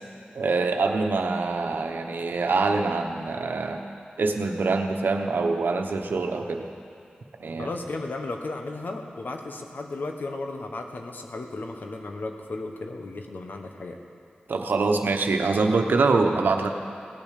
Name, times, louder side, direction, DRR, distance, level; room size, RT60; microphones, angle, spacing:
voice 1, 0.3-3.8 4.2-6.7 7.4-7.7 14.5-16.7, right 3 dB, 85° right, 4 dB, 1.1 m, -24 dB
voice 2, 7.6-14.0, left 2 dB, 70° left, 3 dB, 1.4 m, -34 dB
17.5 x 8.9 x 6.7 m, 2.7 s
cardioid pair, 50°, 3 cm